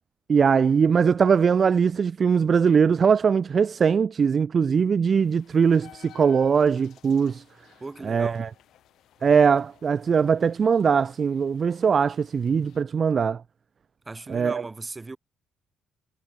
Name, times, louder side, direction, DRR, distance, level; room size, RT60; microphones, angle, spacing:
voice 1, 0.3-7.4 8.0-8.5 9.2-13.4 14.3-14.6, right 6 dB, 45° right, 0.3 m, -21 dB
sound 1, 5.2-12.8, left 12 dB, 80° left, 2.9 m, -55 dB
voice 2, 7.8-8.4 14.0-15.2, right 3 dB, 25° right, 1.6 m, -37 dB
cardioid pair, 90°, 0 cm